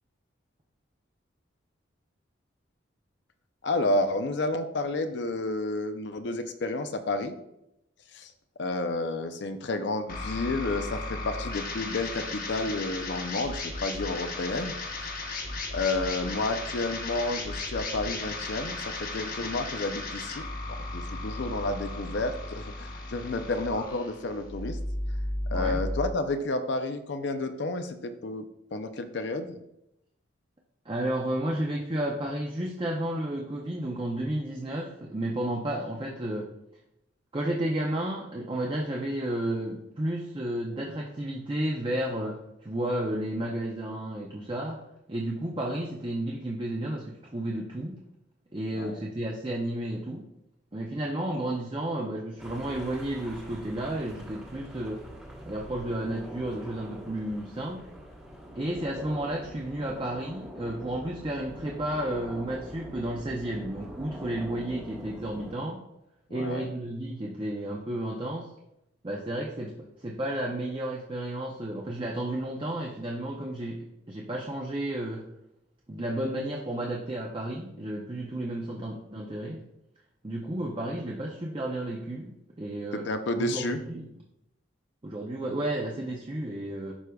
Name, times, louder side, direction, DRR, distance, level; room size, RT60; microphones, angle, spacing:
voice 1, 3.6-7.3 8.1-8.3 8.6-14.7 15.7-20.4 20.9-24.8 25.5-28.4 28.7-29.6 48.7-49.0 66.3-66.7 82.9-83.8, left 2 dB, 60° left, 8 dB, 0.5 m, -30 dB
sound 1, 10.1-26.1, left 2 dB, 45° left, 1.0 m, -35 dB
voice 2, 25.5-25.8 30.9-36.5 37.3-44.8 45.1-48.0 48.5-50.3 50.7-55.1 55.5-57.9 58.6-65.8 66.3-68.5 69.0-75.3 75.9-79.6 80.2-83.1 83.4-84.0 85.0-86.9, right 1 dB, 25° right, -1 dB, 0.5 m, -32 dB
sound 2, 52.4-65.5, equal, 5° right, 1.0 m, -44 dB
11.0 x 4.8 x 2.3 m, 0.84 s
head